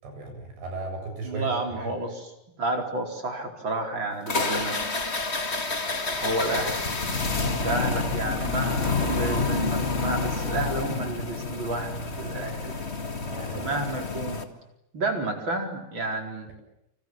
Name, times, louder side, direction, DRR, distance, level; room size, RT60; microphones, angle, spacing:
voice 1, 0.0-1.9 13.2-13.7, right 3 dB, 70° right, 4 dB, 9.8 m, -36 dB
voice 2, 1.2-2.3 2.6-4.7 6.2-6.7 7.4-12.9 13.2-14.4 14.9-16.5, right 2 dB, 25° right, 4 dB, 4.6 m, -31 dB
sound 1, 4.2-14.4, left 3 dB, 50° left, 0.7 m, -28 dB
29.5 x 27.5 x 7.3 m, 0.84 s
omnidirectional pair, 5.2 m